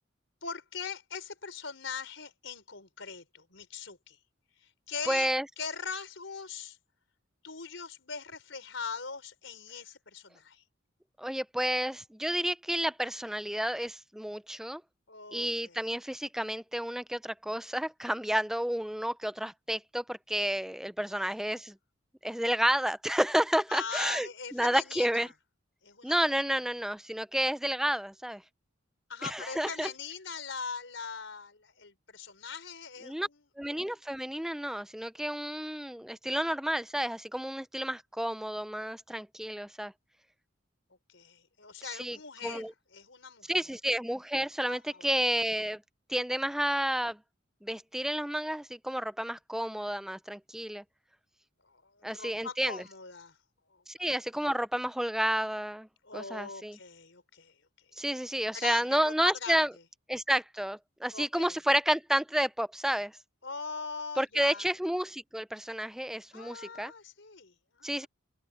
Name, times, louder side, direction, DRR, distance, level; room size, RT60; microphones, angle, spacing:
voice 1, 0.4-4.2 4.6-6.8 7.4-10.6 15.1-15.8 23.7-25.3 25.8-26.2 29.1-33.4 41.1-43.6 44.6-45.0 51.6-53.4 53.7-53.8 56.0-57.5 58.5-59.6 61.1-61.6 63.4-64.6 66.3-68.1, left 5 dB, 75° left, 4.5 m, -41 dB
voice 2, 5.1-5.5 11.2-14.8 15.3-21.7 22.2-25.3 26.0-28.4 29.2-29.9 33.0-33.3 33.6-39.9 42.0-42.2 42.4-42.7 43.5-45.8 46.1-47.2 47.6-50.8 52.0-52.8 54.0-55.9 56.1-56.8 58.0-59.7 60.1-63.1 64.2-66.9 67.8-68.1, equal, ahead, 0.5 m, -31 dB
open air
head